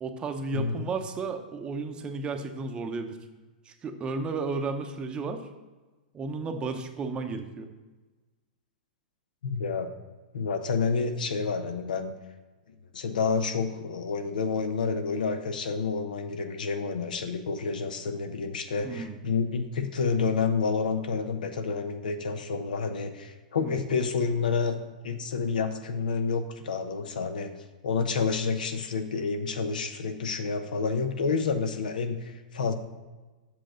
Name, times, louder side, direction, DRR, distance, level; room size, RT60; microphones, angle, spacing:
voice 1, 0.0-3.2 3.7-5.4 6.1-7.7 18.8-19.2 23.6-23.8, right 4 dB, 20° right, 7 dB, 0.7 m, -33 dB
voice 2, 0.5-0.9 9.4-9.9 10.3-12.1 12.9-24.8 25.0-27.5 27.8-32.7, left 5 dB, 80° left, 7 dB, 0.9 m, -29 dB
7.6 x 6.3 x 3.8 m, 1.2 s
hypercardioid pair, 130°, 5 cm